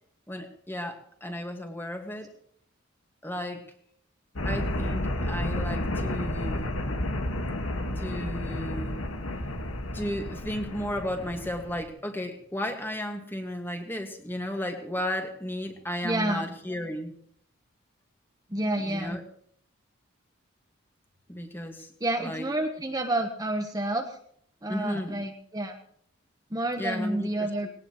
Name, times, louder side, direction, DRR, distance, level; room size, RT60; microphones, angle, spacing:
voice 1, 0.3-2.3 3.2-3.7 4.4-6.7 8.0-9.0 9.9-17.1 18.8-19.2 21.3-21.9 22.2-22.5 24.7-25.2 26.8-27.7, equal, 10° left, 4 dB, 1.9 m, -34 dB
sound 1, 4.4-11.8, left 1 dB, 90° left, 1.9 m, -31 dB
voice 2, 16.0-16.5 18.5-19.2 22.0-24.2 24.6-25.8 26.5-27.7, right 1 dB, 15° right, 3 dB, 1.2 m, -29 dB
20.0 x 18.0 x 3.2 m, 0.63 s
head